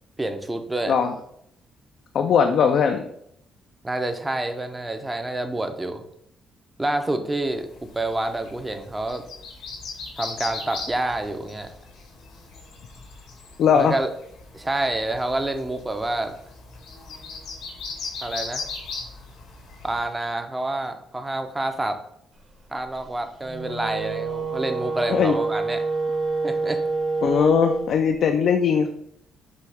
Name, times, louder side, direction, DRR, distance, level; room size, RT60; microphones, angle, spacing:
voice 1, 0.2-0.9 3.8-6.0 6.8-9.2 10.2-11.7 13.7-14.1 14.5-16.3 18.2-18.7 19.8-22.0 22.7-25.8 26.4-26.8, right 2 dB, 15° right, 7 dB, 0.6 m, -28 dB
voice 2, 2.1-3.1 13.6-14.0 25.1-25.4 27.2-28.9, left 7 dB, 70° left, 5 dB, 0.3 m, -19 dB
sound 1, 7.7-20.1, left 4 dB, 85° left, 1.1 m, -38 dB
Wind instrument woodwind instrument, 23.4-27.9, right 3 dB, 30° right, 1.0 m, -27 dB
6.1 x 2.3 x 3.4 m, 0.73 s
cardioid pair, 90°, 0 cm